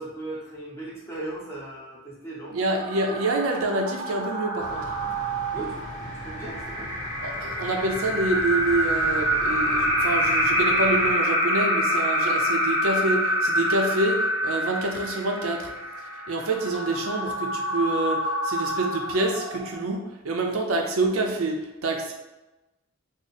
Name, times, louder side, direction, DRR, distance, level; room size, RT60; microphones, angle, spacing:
voice 1, 0.0-2.6 5.5-6.9, right 2 dB, 15° left, -5 dB, 0.8 m, -37 dB
voice 2, 2.5-4.9 7.2-15.7 16.3-22.1, right 2 dB, 85° right, 2 dB, 0.6 m, -27 dB
sound 1, 2.6-19.9, equal, 15° right, 0.6 m, -27 dB
sound 2, 4.6-11.1, left 1 dB, 65° left, 1.3 m, -41 dB
3.6 x 2.0 x 4.0 m, 1.0 s
head